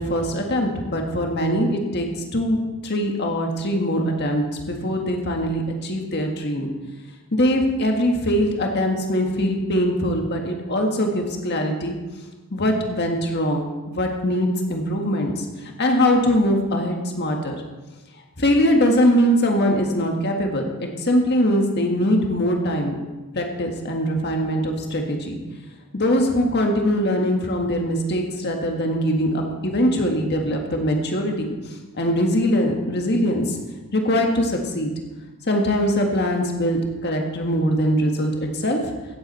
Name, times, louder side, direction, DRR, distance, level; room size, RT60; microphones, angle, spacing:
voice 1, 0.0-2.1 2.3-6.7 7.3-12.0 12.5-17.6 18.4-22.9 23.3-25.4 25.9-31.5 32.0-33.6 33.9-34.9 35.5-38.8, equal, 50° left, 2 dB, 1.7 m, -22 dB
16.0 x 8.2 x 4.4 m, 1.2 s
head